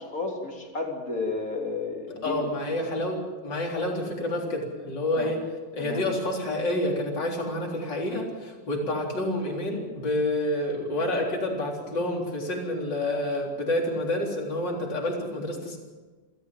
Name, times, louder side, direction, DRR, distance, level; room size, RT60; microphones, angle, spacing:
voice 1, 0.0-2.5 5.1-5.3 5.8-6.0, left 3 dB, 45° left, 1 dB, 3.8 m, -32 dB
voice 2, 2.1-5.4 5.7-15.8, left 1 dB, 70° left, 0 dB, 4.5 m, -28 dB
28.5 x 14.5 x 7.6 m, 1.3 s
omnidirectional pair, 2.0 m